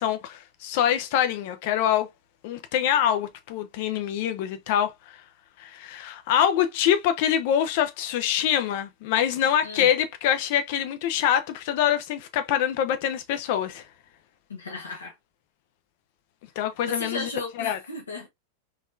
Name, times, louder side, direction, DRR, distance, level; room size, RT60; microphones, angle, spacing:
voice 1, 0.0-2.1 2.4-5.2 5.6-13.8 16.6-17.3 17.6-17.8, left 10 dB, 50° left, 0.7 m, -25 dB
voice 2, 14.5-15.2 16.9-18.3, left 3 dB, 70° left, 1.1 m, -35 dB
3.9 x 3.1 x 2.5 m
figure-of-eight pair, 90°, 0 cm